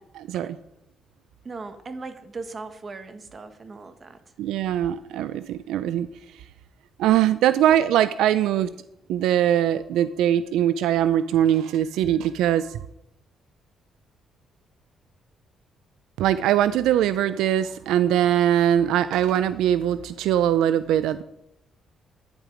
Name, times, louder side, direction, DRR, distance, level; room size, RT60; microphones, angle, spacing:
voice 1, 0.1-0.6 4.4-6.1 6.3-6.4 7.0-8.7 9.1-12.8 16.2-21.2, right 11 dB, 90° right, 14 dB, 0.4 m, -21 dB
voice 2, 1.4-4.2, right 3 dB, 35° right, 9 dB, 1.4 m, -38 dB
11.5 x 10.0 x 5.0 m, 0.82 s
cardioid pair, 90°, 0 cm